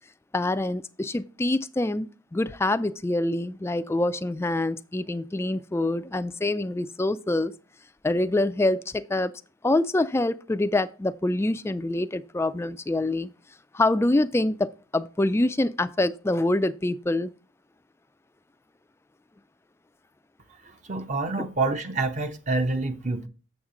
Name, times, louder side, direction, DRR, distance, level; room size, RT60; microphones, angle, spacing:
voice 1, 0.3-7.5 8.0-9.3 9.6-13.3 13.7-17.3 21.4-21.5, left 2 dB, 10° left, 0.3 m, -25 dB
voice 2, 20.8-23.3, right 3 dB, 35° right, 0.7 m, -27 dB
7.2 x 7.1 x 3.7 m
head